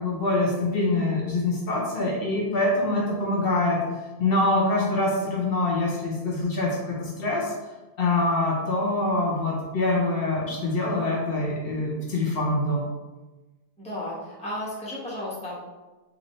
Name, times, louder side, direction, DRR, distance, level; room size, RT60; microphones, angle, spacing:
voice 1, 0.0-3.8 4.2-7.5 8.0-12.8, left 2 dB, 70° left, -2 dB, 1.0 m, -25 dB
voice 2, 13.8-15.6, left 1 dB, 5° left, -6 dB, 0.9 m, -33 dB
4.1 x 2.7 x 3.1 m, 1.1 s
omnidirectional pair, 1.0 m